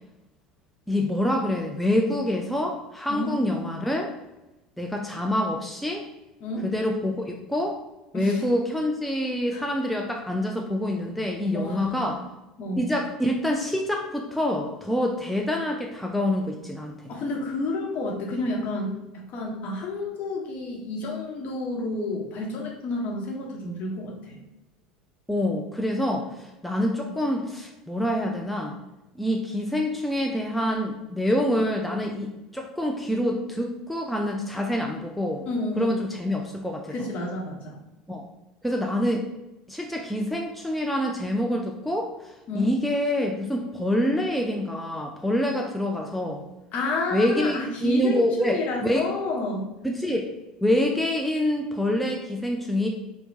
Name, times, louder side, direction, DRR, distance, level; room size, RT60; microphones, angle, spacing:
voice 1, 0.9-4.1 4.8-6.1 6.6-7.8 8.1-12.2 12.8-16.9 25.3-28.8 29.1-35.5 35.8-36.9 38.1-38.3 38.6-39.2 39.7-42.1 42.5-46.4 47.1-49.1 49.8-50.3 50.6-52.9, left 1 dB, ahead, 1 dB, 0.4 m, -26 dB
voice 2, 11.5-12.2 12.6-12.9 17.1-24.4 35.4-36.0 36.9-37.8 42.5-42.7 46.7-49.7, left 2 dB, 50° left, -1 dB, 1.0 m, -30 dB
4.3 x 2.2 x 2.7 m, 1.0 s
hypercardioid pair, 80°, 3 cm